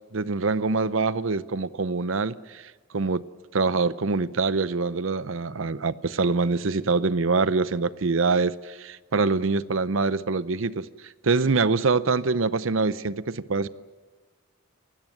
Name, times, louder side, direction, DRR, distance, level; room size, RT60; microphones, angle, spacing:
voice 1, 0.1-3.2 3.5-10.9 11.2-13.7, right 4 dB, 65° right, 0.7 m, -24 dB
29.5 x 16.5 x 7.8 m
head